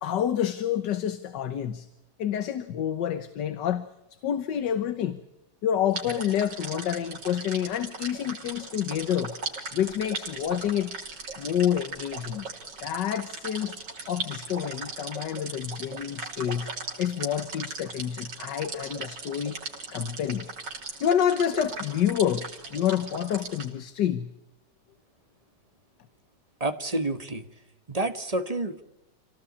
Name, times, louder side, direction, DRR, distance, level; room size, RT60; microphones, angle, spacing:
voice 1, 0.0-1.9 2.2-3.9 4.2-5.2 5.6-9.4 9.7-10.9 11.4-12.5 12.8-13.8 14.1-16.7 17.0-19.6 19.9-20.5 21.0-24.3, left 9 dB, 75° left, 11 dB, 1.7 m, -28 dB
sound 1, 5.9-23.7, right 3 dB, 80° right, 3.8 m, -38 dB
voice 2, 26.6-27.5 27.9-28.8, right 2 dB, 25° right, 9 dB, 1.4 m, -29 dB
27.0 x 18.0 x 8.5 m, 0.92 s
omnidirectional pair, 1.9 m